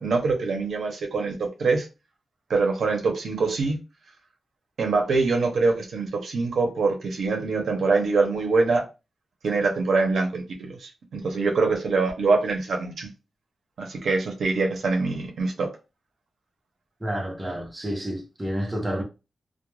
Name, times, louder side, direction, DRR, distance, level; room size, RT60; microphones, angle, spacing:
voice 1, 0.0-1.9 2.5-3.8 4.8-8.8 9.4-13.1 13.8-15.7, right 3 dB, 85° right, 0.6 m, -24 dB
voice 2, 17.0-19.0, equal, 15° right, 0.6 m, -29 dB
2.3 x 2.1 x 3.0 m
wide cardioid pair, 160°, 0 cm